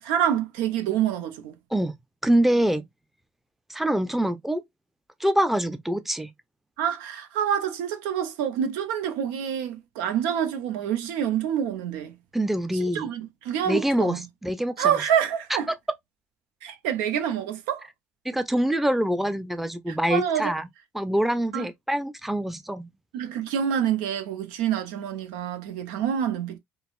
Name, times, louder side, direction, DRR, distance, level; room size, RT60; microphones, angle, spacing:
voice 1, 0.0-1.5 6.8-12.1 12.9-14.2 14.8-15.7 16.6-17.9 19.9-20.5 21.5-21.7 23.1-26.6, right 9 dB, 80° right, 0.6 m, -27 dB
voice 2, 2.2-2.8 3.7-4.6 5.2-6.3 12.3-13.1 13.7-14.2 14.4-15.0 18.2-20.7 20.9-22.9, right 1 dB, 5° right, 0.5 m, -25 dB
3.9 x 2.0 x 2.3 m
supercardioid pair, 70°, 6 cm